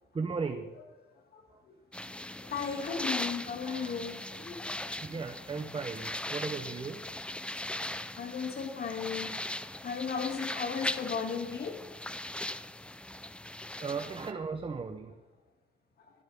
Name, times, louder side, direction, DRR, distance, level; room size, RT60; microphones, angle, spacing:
voice 1, 0.1-0.7 1.5-1.6 3.6-4.0 5.0-7.1 13.8-15.1, right 4 dB, 30° right, 7 dB, 0.8 m, -36 dB
sound 1, 1.9-14.3, left 1 dB, 5° left, 0.5 m, -39 dB
voice 2, 2.4-4.9 8.2-9.4 9.8-11.8 13.8-13.9, left 6 dB, 55° left, 2 dB, 2.4 m, -36 dB
12.0 x 12.0 x 3.6 m, 1.1 s
cardioid pair, 80°, 18 cm